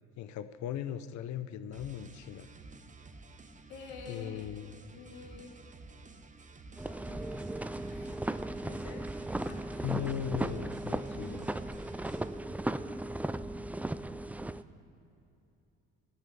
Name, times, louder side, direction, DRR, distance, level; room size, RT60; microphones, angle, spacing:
voice 1, 0.2-2.5 4.1-4.7 9.8-11.5, left 10 dB, 55° left, 12 dB, 0.7 m, -38 dB
sound 1, 1.7-12.4, right 3 dB, 20° right, 1.1 m, -52 dB
voice 2, 3.7-4.5 4.9-5.6 6.8-8.2 8.6-9.1 9.4-10.0, left 5 dB, 75° left, 2 dB, 2.1 m, -49 dB
sound 2, 6.8-14.6, right 1 dB, 5° right, 0.4 m, -36 dB
12.0 x 8.1 x 8.5 m, 2.9 s
hypercardioid pair, 60°, 36 cm